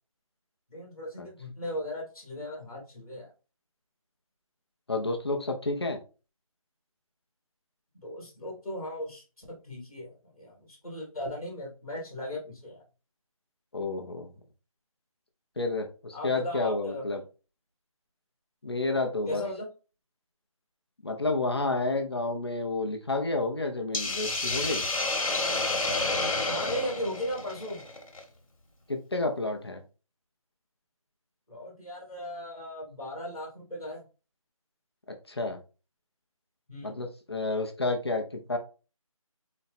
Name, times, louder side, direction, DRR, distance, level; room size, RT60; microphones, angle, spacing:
voice 1, 0.7-3.3 7.9-12.8 16.1-17.0 19.2-19.7 26.5-27.8 31.5-34.0 36.7-37.0, left 1 dB, ahead, -36 dB, 0.7 m, -37 dB
voice 2, 4.9-6.0 13.7-14.3 15.6-17.2 18.6-19.4 21.0-24.8 28.9-29.8 35.3-35.6 36.8-38.6, left 2 dB, 45° left, 3 dB, 0.7 m, -30 dB
Hiss, 23.9-28.2, left 2 dB, 65° left, 1.3 m, -30 dB
4.1 x 2.2 x 4.1 m, 0.33 s
figure-of-eight pair, 175°, 18 cm